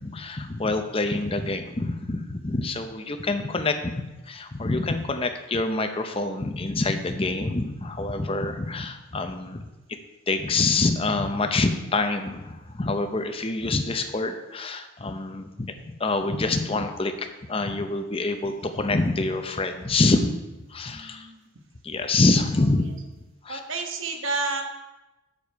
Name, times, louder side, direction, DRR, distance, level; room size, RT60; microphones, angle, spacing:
voice 1, 0.0-9.7 10.3-20.3 20.7-21.3 21.8-22.8 23.4-23.6, left 3 dB, 25° left, 6 dB, 0.6 m, -26 dB
voice 2, 20.9-21.4 23.5-24.6, right 3 dB, 60° right, 4 dB, 1.0 m, -30 dB
7.3 x 6.8 x 4.6 m, 1.1 s
head